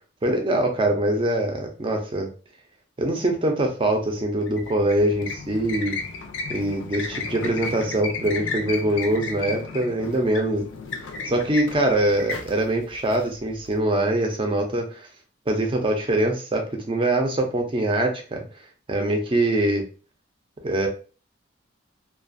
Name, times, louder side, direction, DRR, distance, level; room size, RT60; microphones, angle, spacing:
voice 1, 0.2-2.3 3.0-6.0 6.5-10.7 11.3-15.0 15.5-18.4 18.9-19.8 20.6-20.9, right 1 dB, 25° right, 3 dB, 0.5 m, -23 dB
sound 1, 4.4-13.7, left 3 dB, 70° left, 0.4 m, -34 dB
2.4 x 2.2 x 2.5 m, 0.37 s
head